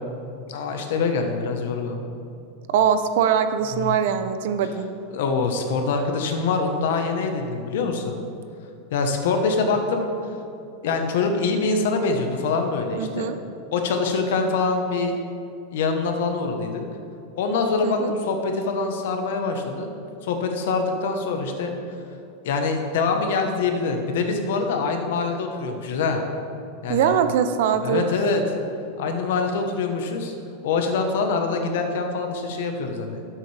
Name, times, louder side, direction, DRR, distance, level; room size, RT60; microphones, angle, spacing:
voice 1, 0.5-2.0 3.7-4.0 5.1-8.2 8.9-10.4 10.8-13.3 13.7-15.2 15.7-16.8 17.4-19.9 20.2-21.7 22.4-26.2 26.8-27.1 27.8-28.4 29.0-30.3 30.6-33.2, left 4 dB, 65° left, 4 dB, 1.1 m, -24 dB
voice 2, 2.7-4.9 13.0-13.4 17.8-18.1 26.9-28.1, right 8 dB, 55° right, 9 dB, 0.5 m, -22 dB
12.5 x 7.4 x 3.4 m, 2.6 s
supercardioid pair, 170°, 0 cm